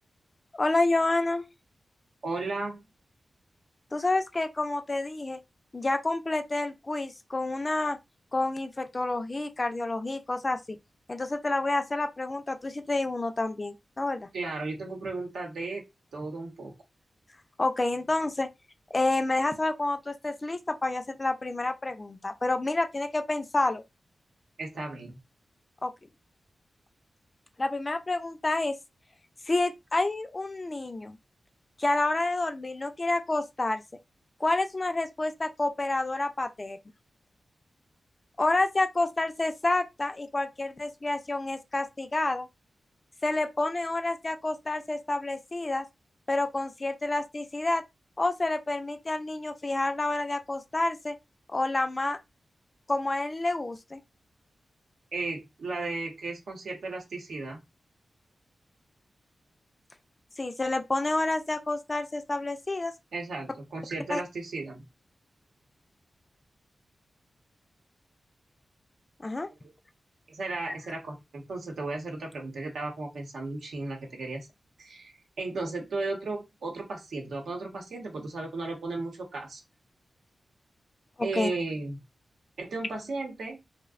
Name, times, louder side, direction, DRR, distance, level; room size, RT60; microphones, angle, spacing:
voice 1, 0.5-1.5 3.9-5.4 5.7-8.0 8.3-10.8 11.1-14.3 17.6-18.5 18.9-23.8 25.8-25.9 27.6-28.8 29.5-31.2 31.8-33.8 34.4-36.8 38.4-42.5 43.2-45.9 46.3-47.8 48.2-51.2 51.5-52.2 52.9-54.0 60.4-62.9 64.1-64.2 69.2-69.5 81.4-81.5, left 2 dB, 25° left, 0.3 m, -29 dB
voice 2, 2.2-2.8 14.3-15.9 16.1-16.7 24.6-25.2 55.1-57.6 63.1-64.9 70.3-74.5 74.8-79.6 81.2-82.0 82.6-83.6, right 3 dB, 90° right, 0.9 m, -35 dB
2.6 x 2.1 x 2.3 m
wide cardioid pair, 115°, 0 cm